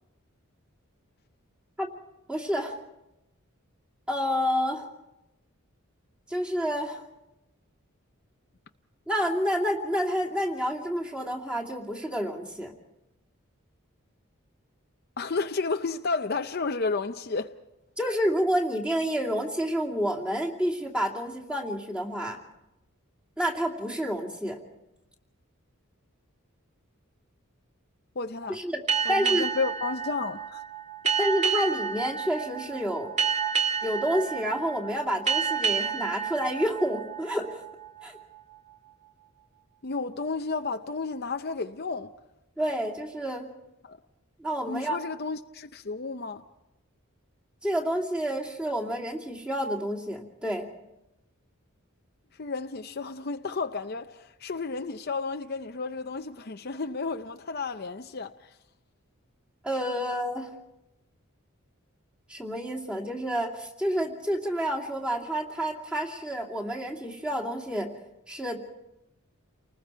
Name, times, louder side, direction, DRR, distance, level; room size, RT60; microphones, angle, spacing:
voice 1, 2.3-2.8 4.1-4.9 6.3-7.0 9.1-12.7 18.0-22.4 23.4-24.6 28.5-28.8 29.1-29.5 31.2-33.1 33.8-37.6 38.0-38.2 42.6-43.5 44.4-45.0 47.6-50.7 59.6-60.5 62.3-67.9 68.3-68.6, equal, 5° right, 2.7 m, -29 dB
voice 2, 15.2-17.5 28.2-28.6 29.0-30.6 39.8-42.1 43.8-44.0 44.7-46.4 52.4-58.6, left 4 dB, 50° left, 0.7 m, -32 dB
sound 1, 28.9-38.0, right 7 dB, 35° right, 2.2 m, -30 dB
29.5 x 20.0 x 4.6 m
head